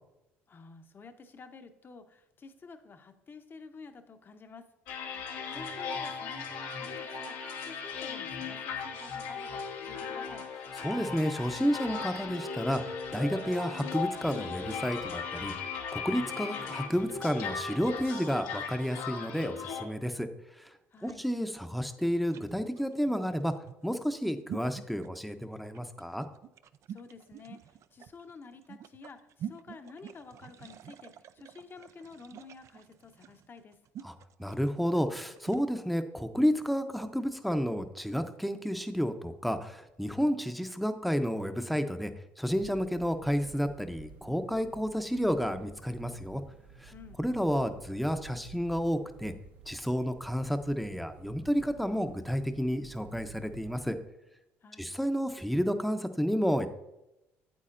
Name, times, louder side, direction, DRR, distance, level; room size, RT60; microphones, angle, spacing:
voice 1, 0.5-4.6 5.5-10.4 20.9-21.2 26.9-33.8 46.9-47.2 54.6-54.9, left 4 dB, 35° left, 8 dB, 0.8 m, -50 dB
sound 1, 4.9-19.8, left 5 dB, 80° left, 1.2 m, -38 dB
voice 2, 10.8-12.8 13.1-15.5 15.9-20.7 21.0-23.5 23.8-26.3 34.0-34.1 34.4-42.1 42.4-46.4 46.8-46.9 47.2-49.3 49.7-54.0 54.8-56.7, equal, ahead, 8 dB, 0.7 m, -31 dB
sound 2, 20.9-35.7, right 9 dB, 55° right, 0.4 m, -47 dB
sound 3, 42.5-54.0, right 4 dB, 85° right, 1.2 m, -52 dB
8.5 x 8.2 x 2.6 m, 0.91 s
supercardioid pair, 80°, 6 cm